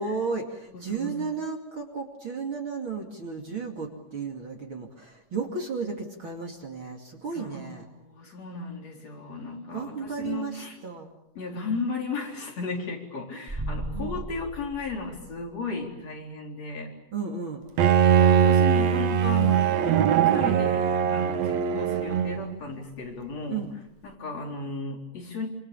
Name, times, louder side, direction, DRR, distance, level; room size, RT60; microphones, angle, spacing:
voice 1, 0.0-7.8 9.7-11.1 13.9-14.2 17.1-17.6 23.5-23.7, right 5 dB, 40° right, 2 dB, 3.0 m, -33 dB
voice 2, 0.7-1.3 7.3-10.7 11.4-16.9 18.1-20.1 20.3-23.6 24.0-25.5, left 4 dB, 50° left, 1 dB, 5.1 m, -35 dB
sound 1, 13.5-15.7, right 1 dB, 10° right, 1.9 m, -36 dB
Bowed string instrument, 17.8-22.6, right 9 dB, 60° right, 2.2 m, -21 dB
27.0 x 26.5 x 7.1 m, 0.83 s
omnidirectional pair, 3.8 m